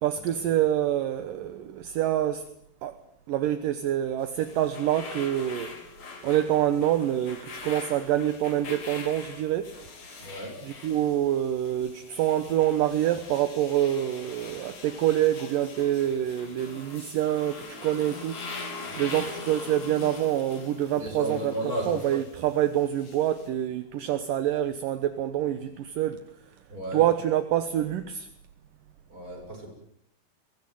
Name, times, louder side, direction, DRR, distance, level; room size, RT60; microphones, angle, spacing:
voice 1, 0.0-2.4 2.8-3.0 3.3-5.7 6.2-9.7 10.6-18.4 19.0-21.6 21.9-26.2 26.9-28.3, right 12 dB, 65° right, 2.3 m, -26 dB
sound 1, 4.2-23.5, left 4 dB, 40° left, 4.2 m, -43 dB
voice 2, 10.2-10.6 18.8-19.2 20.9-22.1 26.7-27.0 29.1-29.7, right 1 dB, 20° right, 7.4 m, -34 dB
23.5 x 19.5 x 9.3 m
omnidirectional pair, 5.0 m